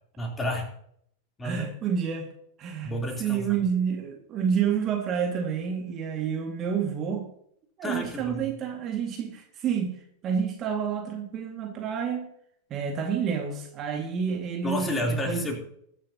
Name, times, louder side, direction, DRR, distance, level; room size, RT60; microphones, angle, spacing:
voice 1, 0.2-0.7 1.4-1.6 2.8-3.5 7.8-8.5 14.6-15.5, left 1 dB, 15° left, 1 dB, 3.5 m, -30 dB
voice 2, 1.4-2.3 2.6-7.3 7.8-12.3 12.7-15.5, right 7 dB, 30° right, 2 dB, 2.1 m, -29 dB
21.5 x 9.9 x 2.9 m, 0.68 s
figure-of-eight pair, 90°, 0 cm